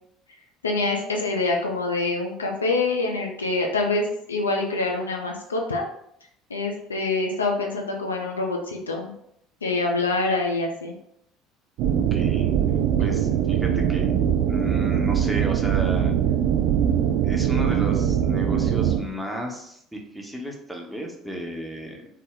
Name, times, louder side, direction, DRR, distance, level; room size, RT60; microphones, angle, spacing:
voice 1, 0.6-5.8 6.5-9.1 9.6-10.9 13.0-13.1, left 3 dB, 80° left, 1 dB, 0.4 m, -25 dB
sound 1, 11.8-19.0, right 9 dB, 55° right, 0.3 m, -22 dB
voice 2, 12.1-12.5 13.0-14.1 14.5-16.1 17.2-22.1, equal, 5° right, 0 dB, 0.6 m, -33 dB
2.4 x 2.0 x 3.5 m, 0.72 s
figure-of-eight pair, 60°, 0 cm